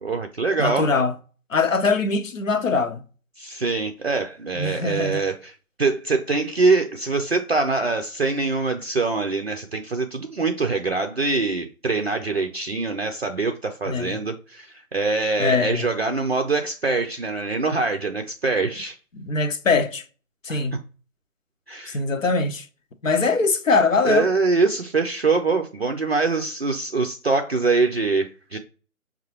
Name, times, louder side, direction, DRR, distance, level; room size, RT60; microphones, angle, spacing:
voice 1, 0.0-0.9 3.4-5.5 5.8-19.0 20.5-20.6 21.7-22.0 24.0-28.6, right 3 dB, 45° right, 0.5 m, -24 dB
voice 2, 0.6-1.1 1.5-3.0 4.6-5.2 13.9-14.2 15.4-15.9 19.1-20.0 20.4-20.7 21.9-22.7 23.0-24.3, left 4 dB, 60° left, 0.8 m, -22 dB
5.4 x 2.3 x 2.9 m
figure-of-eight pair, 155°, 45 cm